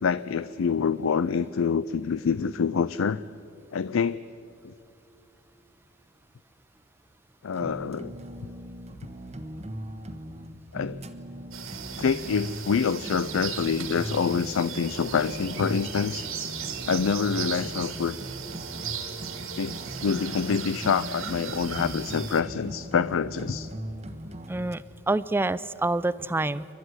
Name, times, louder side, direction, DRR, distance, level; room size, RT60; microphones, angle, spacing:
voice 1, 0.0-3.2 3.7-4.2 4.6-4.7 7.4-8.1 10.7-11.0 12.0-16.2 16.8-18.2 19.5-19.7 20.0-23.7, left 6 dB, 70° left, 15 dB, 0.4 m, -26 dB
sound 1, 7.5-24.7, right 1 dB, 30° right, 1.3 m, -39 dB
sound 2, 11.5-22.4, right 7 dB, 80° right, 2.4 m, -37 dB
voice 2, 24.5-26.7, right 2 dB, 10° right, 17 dB, 0.4 m, -27 dB
29.0 x 12.0 x 9.5 m, 2.6 s
head